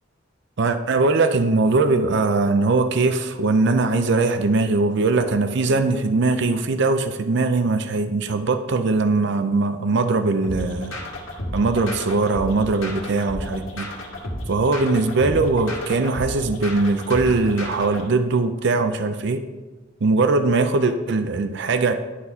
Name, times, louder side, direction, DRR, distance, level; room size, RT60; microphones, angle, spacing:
voice 1, 0.6-11.0 11.5-13.9 14.5-19.4 20.0-21.9, right 3 dB, 65° right, 9 dB, 0.5 m, -21 dB
sound 1, 10.4-18.0, left 1 dB, 85° left, 1.8 m, -32 dB
11.0 x 4.1 x 5.5 m, 1.3 s
head